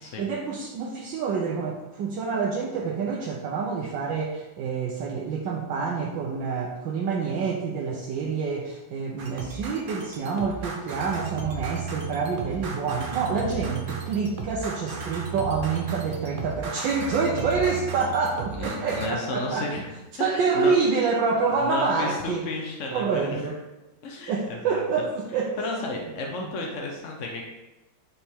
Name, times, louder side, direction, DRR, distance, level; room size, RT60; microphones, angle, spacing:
voice 1, 0.2-19.7 20.2-22.4 22.9-23.6 24.3-25.6, right 5 dB, 80° right, -2 dB, 1.5 m, -27 dB
sound 1, 9.2-19.1, right 5 dB, 50° right, 0.6 m, -35 dB
voice 2, 18.5-19.9 20.2-20.7 21.5-23.4 24.0-24.8 25.3-27.5, left 3 dB, 55° left, 0 dB, 1.0 m, -33 dB
7.1 x 5.4 x 3.6 m, 1.0 s
omnidirectional pair, 2.0 m